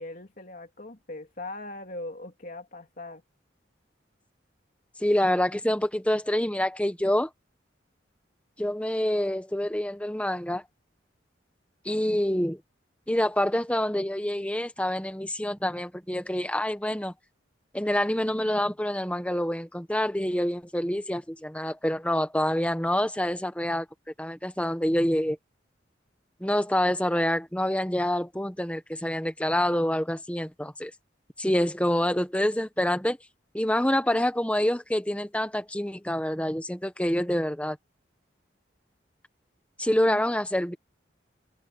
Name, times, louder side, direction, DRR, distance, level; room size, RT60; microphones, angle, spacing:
voice 1, 0.0-3.2 40.1-40.2, left 2 dB, 50° left, 3.1 m, -40 dB
voice 2, 5.0-7.3 8.6-10.6 11.8-12.6 13.1-17.1 17.7-23.8 24.2-25.4 26.4-30.9 31.4-33.2 33.5-37.8 39.8-40.7, left 1 dB, 5° left, 1.3 m, -26 dB
head